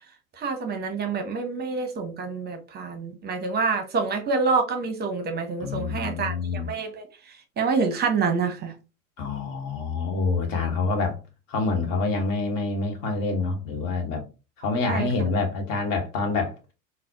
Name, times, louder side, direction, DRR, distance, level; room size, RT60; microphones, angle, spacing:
voice 1, 0.4-8.7 14.9-15.3, right 4 dB, 25° right, 0.8 m, -27 dB
voice 2, 5.6-6.7 9.2-11.2 11.5-14.2 14.6-16.7, left 3 dB, 50° left, 1.2 m, -27 dB
3.9 x 2.1 x 2.8 m
figure-of-eight pair, 90°, 42 cm